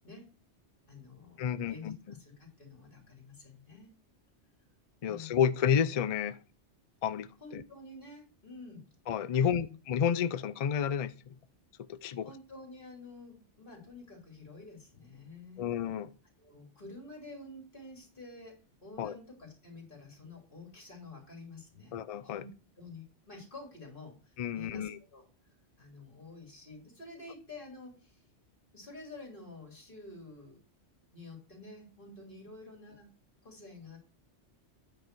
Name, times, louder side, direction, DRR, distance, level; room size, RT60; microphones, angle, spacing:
voice 1, 0.9-3.9 5.0-5.5 7.4-8.8 9.3-9.7 12.2-15.6 16.4-21.9 22.2-22.5 22.8-25.2 25.8-28.2 28.7-30.6 31.1-33.1 33.4-34.0, left 3 dB, 50° left, 3.2 m, -49 dB
voice 2, 1.4-1.9 5.0-6.4 7.0-7.6 9.1-11.1 11.9-12.3 15.6-16.1 19.0-19.1 21.9-22.4 24.4-25.0, left 8 dB, 70° left, 0.3 m, -30 dB
9.2 x 5.4 x 4.5 m
omnidirectional pair, 1.2 m